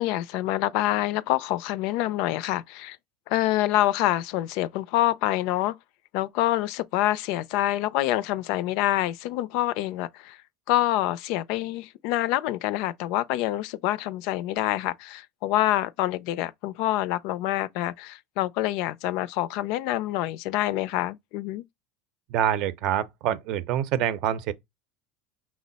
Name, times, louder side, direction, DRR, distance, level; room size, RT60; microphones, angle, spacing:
voice 1, 0.0-3.0 3.3-5.8 6.1-10.4 10.7-21.6, left 15 dB, 65° left, 0.3 m, -26 dB
voice 2, 22.3-24.5, right 10 dB, 60° right, 0.6 m, -26 dB
5.9 x 2.0 x 4.0 m
supercardioid pair, 110°, 0 cm